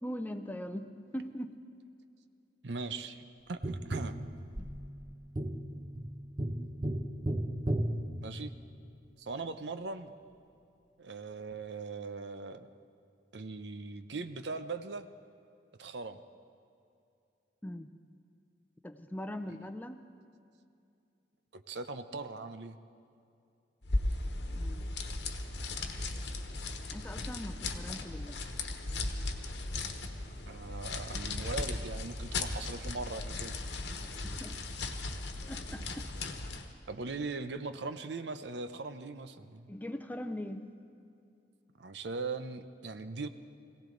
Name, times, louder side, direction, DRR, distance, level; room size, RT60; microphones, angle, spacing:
voice 1, 0.0-1.6 4.6-4.7 17.6-17.9 18.8-20.1 24.5-24.9 26.9-28.4 34.0-34.6 35.5-36.1 39.7-40.7, equal, 10° left, 8 dB, 0.6 m, -41 dB
voice 2, 2.6-4.2 8.2-8.5 9.2-10.1 11.0-12.7 13.3-15.1 15.8-16.2 21.5-22.8 30.5-33.6 36.9-39.7 41.8-43.3, right 3 dB, 70° right, 10 dB, 0.7 m, -40 dB
Tap, 3.6-8.9 11.5-11.6, right 1 dB, 25° right, 0.8 m, -36 dB
sound 1, 23.8-36.7, left 2 dB, 70° left, 1.2 m, -37 dB
21.5 x 17.0 x 3.9 m, 2.5 s
head